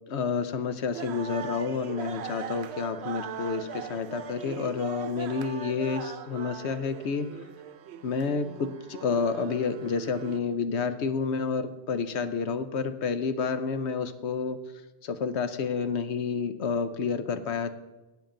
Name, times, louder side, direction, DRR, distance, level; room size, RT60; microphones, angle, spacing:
voice 1, 0.1-7.3 8.0-14.6 15.0-17.7, left 5 dB, 75° left, 10 dB, 1.0 m, -29 dB
sound 1, 0.9-10.4, right 8 dB, 70° right, 0.9 m, -40 dB
17.0 x 7.4 x 3.8 m, 1.1 s
omnidirectional pair, 1.2 m